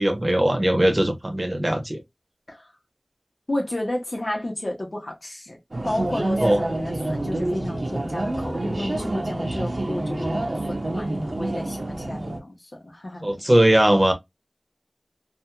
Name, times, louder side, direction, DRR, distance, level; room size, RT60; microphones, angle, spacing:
voice 1, 0.0-2.0 6.4-6.6 13.2-14.1, right 1 dB, 35° right, 0.8 m, -19 dB
voice 2, 3.5-5.6 5.8-13.5, left 1 dB, 75° left, 1.1 m, -32 dB
sound 1, 5.7-12.4, right 1 dB, 85° right, 0.6 m, -28 dB
2.8 x 2.5 x 2.2 m
wide cardioid pair, 40°, 0 cm